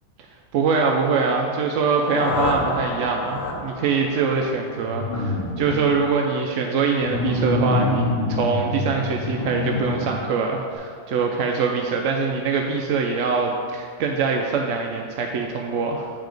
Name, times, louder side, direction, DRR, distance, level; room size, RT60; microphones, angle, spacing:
voice 1, 0.5-16.1, right 5 dB, 70° right, 1 dB, 0.7 m, -23 dB
sound 1, 1.7-5.6, left 3 dB, 65° left, 0.9 m, -30 dB
sound 2, 4.8-6.1 7.0-10.2 10.7-10.8, left 2 dB, 45° left, 1.1 m, -26 dB
7.4 x 5.0 x 3.9 m, 2.1 s
omnidirectional pair, 1.7 m